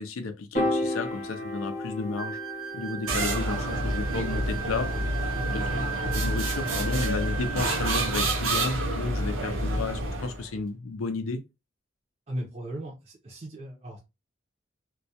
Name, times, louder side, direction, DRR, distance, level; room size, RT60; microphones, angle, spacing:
voice 1, 0.0-2.4 2.7-4.9 5.5-11.4, left 4 dB, 80° left, 0.4 m, -33 dB
Piano, 0.5-6.9, left 1 dB, 35° left, 0.7 m, -35 dB
sound 1, 2.2-8.2, right 7 dB, 90° right, 1.0 m, -37 dB
sound 2, 3.1-10.5, right 1 dB, 70° right, 0.6 m, -28 dB
voice 2, 12.3-14.0, right 1 dB, 30° right, 0.5 m, -37 dB
2.2 x 2.1 x 2.7 m
head